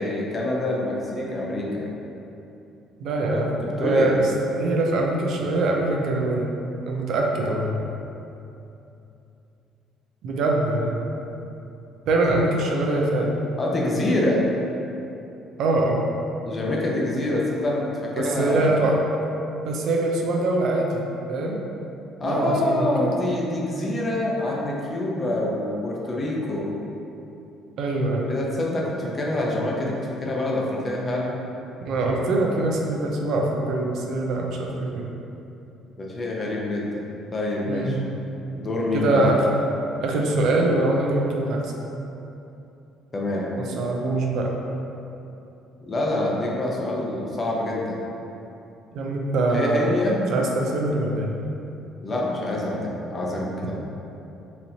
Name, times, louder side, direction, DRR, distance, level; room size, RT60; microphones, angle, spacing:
voice 1, 0.0-1.9 3.3-4.2 13.6-14.4 16.5-18.9 22.2-26.7 28.3-31.3 36.0-37.0 37.3-38.0 38.5-39.3 43.1-43.5 45.9-48.0 49.5-50.2 52.0-53.7, left 1 dB, 30° left, -3 dB, 0.7 m, -26 dB
voice 2, 3.0-6.5 6.9-7.8 10.2-11.1 12.1-13.4 15.6-16.1 18.1-19.0 19.6-21.6 22.2-22.9 27.8-28.3 31.8-35.1 37.7-38.0 38.9-39.4 40.0-41.7 43.8-44.5 48.9-49.9 50.3-51.3, right 2 dB, 70° right, 0 dB, 0.4 m, -23 dB
4.0 x 2.9 x 2.7 m, 2.8 s
cardioid pair, 95°, 0 cm